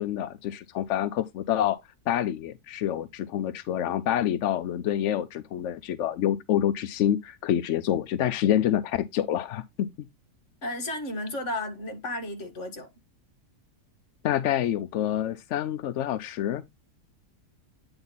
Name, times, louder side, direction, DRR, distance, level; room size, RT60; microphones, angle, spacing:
voice 1, 0.0-1.8 2.1-10.1 14.2-16.6, left 11 dB, 65° left, 0.7 m, -27 dB
voice 2, 10.6-12.9, left 1 dB, 45° left, 2.0 m, -33 dB
8.9 x 3.9 x 3.9 m
omnidirectional pair, 1.8 m